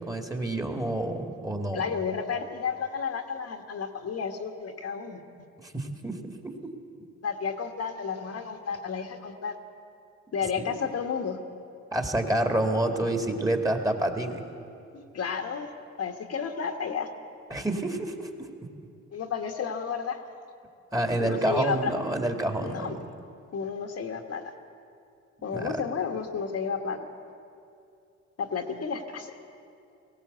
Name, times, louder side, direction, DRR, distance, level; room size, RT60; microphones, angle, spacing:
voice 1, 0.1-1.8 5.6-6.7 10.6-10.7 11.9-14.4 17.5-18.3 20.9-22.9 25.5-25.8, right 1 dB, 10° right, 4 dB, 2.1 m, -28 dB
voice 2, 1.7-5.2 7.2-9.5 10.3-11.4 14.9-15.7 16.0-17.1 19.1-20.2 21.1-21.9 22.6-23.0 23.5-24.5 25.4-27.1 28.4-29.4, left 6 dB, 55° left, 4 dB, 1.6 m, -32 dB
19.0 x 17.0 x 8.1 m, 2.5 s
cardioid pair, 90°, 30 cm